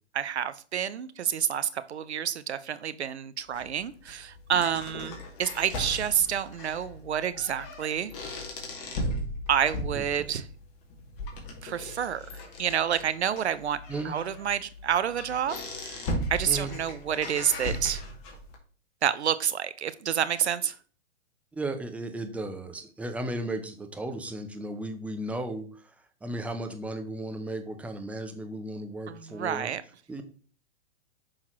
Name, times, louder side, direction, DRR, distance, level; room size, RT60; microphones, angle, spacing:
voice 1, 0.1-8.1 9.5-10.4 11.6-12.2 12.6-13.8 14.0-18.0 19.0-20.8 29.1-29.8, right 9 dB, 75° right, 14 dB, 0.7 m, -29 dB
sound 1, 3.5-18.5, left 1 dB, 40° left, 2.1 m, -37 dB
voice 2, 9.9-10.4 13.9-14.1 16.5-16.7 21.5-25.9 26.2-29.7 30.1-30.2, right 1 dB, 5° right, 6 dB, 0.5 m, -35 dB
6.4 x 5.6 x 3.0 m, 0.41 s
figure-of-eight pair, 115°, 33 cm